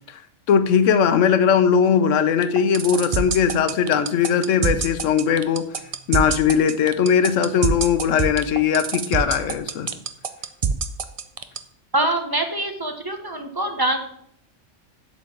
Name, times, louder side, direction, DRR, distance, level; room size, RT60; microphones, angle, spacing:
voice 1, 0.5-5.7 6.1-9.9, left 7 dB, 80° left, 11 dB, 1.0 m, -19 dB
sound 1, 2.4-11.6, right 6 dB, 60° right, 0.3 m, -24 dB
voice 2, 11.9-14.0, right 1 dB, 20° right, 5 dB, 0.7 m, -24 dB
7.9 x 4.3 x 6.9 m, 0.67 s
omnidirectional pair, 1.3 m